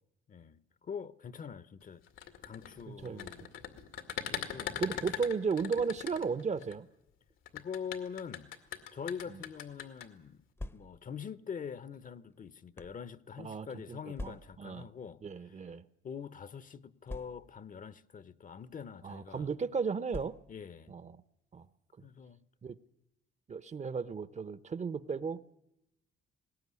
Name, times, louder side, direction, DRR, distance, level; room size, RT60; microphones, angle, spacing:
voice 1, 0.3-2.0 2.4-3.4 4.3-4.8 7.5-8.5 8.9-10.4 10.7-15.7 16.0-19.5 20.5-20.9 22.0-22.4, left 7 dB, 40° left, 0.9 m, -44 dB
sound 1, 2.1-6.7 7.5-10.1, left 9 dB, 85° left, 2.2 m, -40 dB
voice 2, 2.9-3.3 4.8-6.9 9.3-9.4 13.4-14.9 15.2-15.8 19.0-20.4 20.9-21.2 21.5-21.7 22.6-22.7 23.5-25.4, right 5 dB, 35° right, 0.9 m, -35 dB
sound 2, 10.6-11.2 12.0-13.0 14.1-14.8 15.6-15.8 16.1-16.2 17.1-17.7 18.6-18.8 20.1-20.7, left 2 dB, 10° left, 0.8 m, -45 dB
20.0 x 18.0 x 9.7 m
cardioid pair, 90°, 20 cm